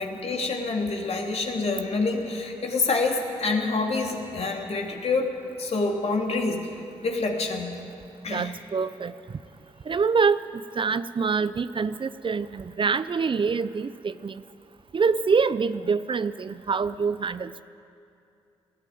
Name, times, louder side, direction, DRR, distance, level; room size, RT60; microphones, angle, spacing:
voice 1, 0.0-6.7 7.0-7.7 8.2-8.5, left 3 dB, 50° left, 1 dB, 3.0 m, -27 dB
voice 2, 8.3-9.1 9.9-14.4 14.9-17.6, right 5 dB, 40° right, 15 dB, 0.6 m, -25 dB
19.5 x 14.5 x 9.2 m, 2.6 s
hypercardioid pair, 40°, 13 cm